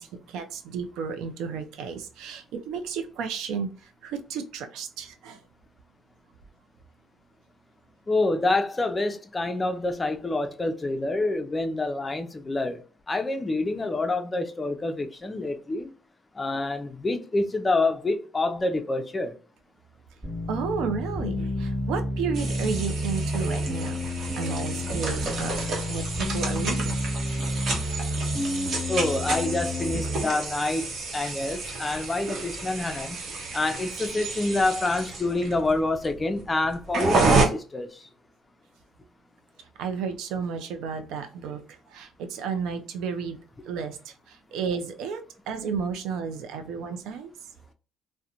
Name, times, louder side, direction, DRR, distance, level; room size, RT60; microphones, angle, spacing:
voice 1, 0.0-3.7 4.0-5.4 20.5-24.0 24.4-27.0 39.8-41.6 41.9-43.4 43.7-45.2 45.5-47.3, right 6 dB, 80° right, 0.4 m, -32 dB
voice 2, 8.1-12.8 13.1-15.9 16.4-19.3 28.9-30.9 31.1-33.2 33.5-37.9, left 2 dB, 25° left, 0.4 m, -27 dB
sound 1, 20.2-30.2, left 1 dB, 25° right, 1.2 m, -30 dB
sound 2, 22.3-37.5, right 3 dB, 60° right, 0.9 m, -30 dB
2.4 x 2.1 x 2.8 m
cardioid pair, 85°, 0 cm